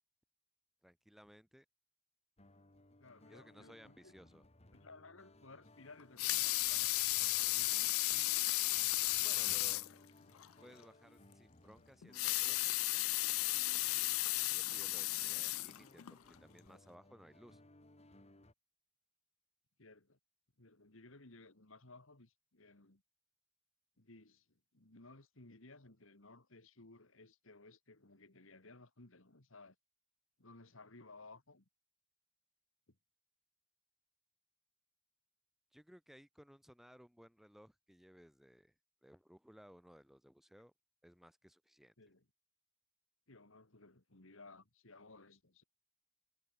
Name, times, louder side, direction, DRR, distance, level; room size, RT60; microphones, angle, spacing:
voice 1, 0.8-1.6 3.3-4.4 9.2-9.8 10.6-12.7 13.7-17.6 35.7-38.7 39.0-40.7 41.0-41.9, equal, ahead, 1.1 m, -60 dB
sound 1, 2.4-18.5, left 1 dB, 30° left, 2.5 m, -63 dB
voice 2, 3.0-4.1 4.7-7.9 19.8-20.2 20.6-23.0 24.0-29.8 30.4-31.7 32.9-33.0 42.0-42.2 43.3-45.6, left 3 dB, 70° left, 2.6 m, -59 dB
Water tap faucet / Sink (filling or washing) / Liquid, 6.0-9.9 10.4-10.5 10.8-10.9 12.0-16.2 16.7-16.8, left 19 dB, 90° left, 0.5 m, -34 dB
head